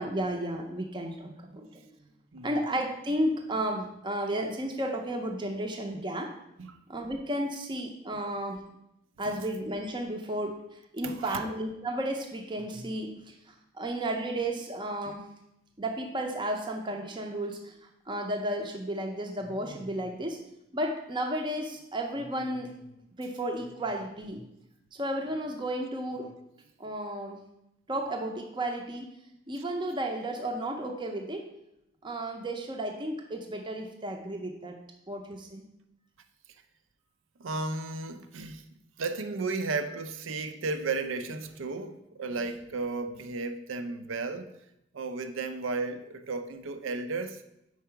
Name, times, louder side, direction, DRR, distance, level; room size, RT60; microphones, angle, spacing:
voice 1, 0.0-1.7 2.4-6.3 6.9-8.6 9.2-10.6 10.9-13.3 13.7-15.3 15.8-17.7 18.1-20.4 20.7-24.4 24.9-26.3 26.8-27.4 27.9-29.1 29.5-31.4 32.0-34.8 35.1-35.7, right 1 dB, 25° right, 3 dB, 0.5 m, -33 dB
voice 2, 2.3-2.6 6.6-6.8 8.1-8.3 11.0-11.5 15.1-15.2 37.4-38.7 39.0-44.5 44.9-47.4, right 3 dB, 80° right, 9 dB, 0.5 m, -34 dB
4.7 x 4.6 x 5.7 m, 0.83 s
head